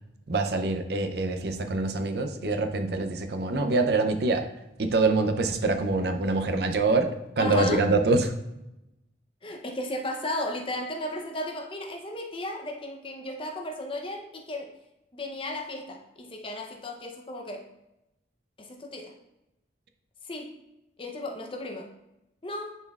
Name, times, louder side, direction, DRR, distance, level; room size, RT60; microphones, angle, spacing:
voice 1, 0.3-4.5 4.8-8.3, right 3 dB, 60° right, 7 dB, 0.6 m, -25 dB
voice 2, 7.4-7.9 9.4-14.8 15.1-17.7 18.6-19.1 20.2-20.5 21.0-21.9 22.4-22.8, left 1 dB, 30° left, 2 dB, 0.7 m, -35 dB
10.0 x 4.3 x 2.4 m, 0.90 s
head